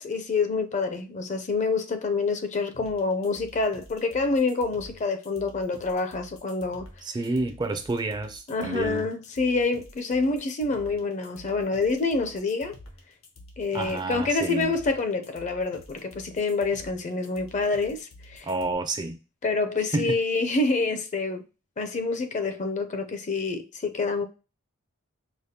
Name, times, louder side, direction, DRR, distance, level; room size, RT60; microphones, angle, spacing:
voice 1, 0.0-6.9 8.5-12.8 13.6-18.5 19.4-21.4 21.8-24.2, left 3 dB, 35° left, 0.5 m, -27 dB
sound 1, 2.7-18.7, left 1 dB, 85° left, 1.1 m, -49 dB
voice 2, 7.0-9.1 13.7-14.8 18.4-19.2 19.9-20.2, right 2 dB, 20° right, 0.3 m, -29 dB
4.9 x 2.1 x 2.7 m
head